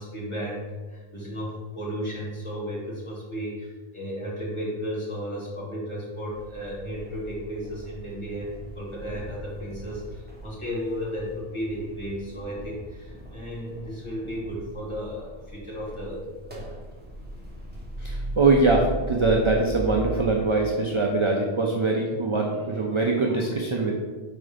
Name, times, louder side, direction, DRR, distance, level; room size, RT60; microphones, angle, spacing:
voice 1, 0.0-16.2, equal, 25° left, -7 dB, 2.2 m, -34 dB
sound 1, 6.3-20.4, right 1 dB, 10° right, 1.3 m, -38 dB
voice 2, 18.0-24.0, right 3 dB, 35° right, 0 dB, 0.5 m, -23 dB
5.2 x 3.9 x 5.0 m, 1.3 s
omnidirectional pair, 1.1 m